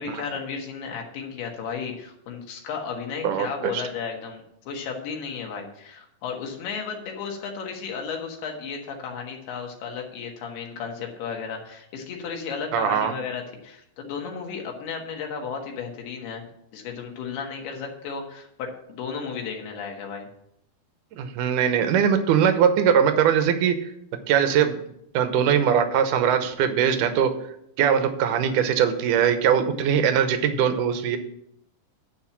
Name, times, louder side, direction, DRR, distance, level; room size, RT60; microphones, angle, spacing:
voice 1, 0.0-20.3, left 6 dB, 75° left, 1 dB, 3.5 m, -34 dB
voice 2, 3.2-3.8 12.7-13.1 21.2-23.7 24.3-24.8 25.1-27.3 27.8-31.2, right 8 dB, 75° right, 8 dB, 2.0 m, -21 dB
11.0 x 4.4 x 7.2 m, 0.74 s
omnidirectional pair, 4.6 m